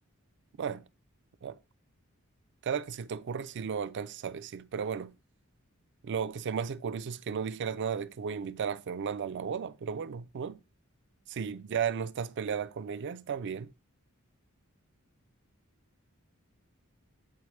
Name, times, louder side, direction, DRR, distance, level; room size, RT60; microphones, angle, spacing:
voice 1, 2.6-5.1 6.0-10.6 11.3-13.7, right 7 dB, 55° right, 0.4 m, -34 dB
8.4 x 4.2 x 3.1 m
head